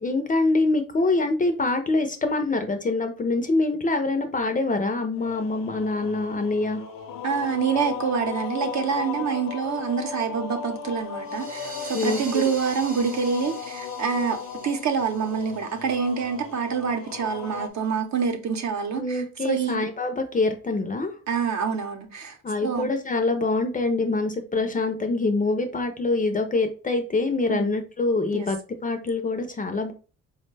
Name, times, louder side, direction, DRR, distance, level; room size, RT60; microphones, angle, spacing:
voice 1, 0.0-6.8 11.9-12.5 19.0-21.1 22.4-29.9, left 3 dB, 25° left, 0.4 m, -25 dB
sound 1, 5.1-17.7, left 7 dB, 90° left, 0.5 m, -36 dB
voice 2, 7.2-14.4 14.6-19.9 21.3-22.4 22.6-22.9 27.5-27.8 28.3-28.5, right 6 dB, 60° right, 0.7 m, -26 dB
sound 2, 11.2-16.6, right 2 dB, 30° right, 0.9 m, -43 dB
4.4 x 2.1 x 3.1 m
wide cardioid pair, 170°, 32 cm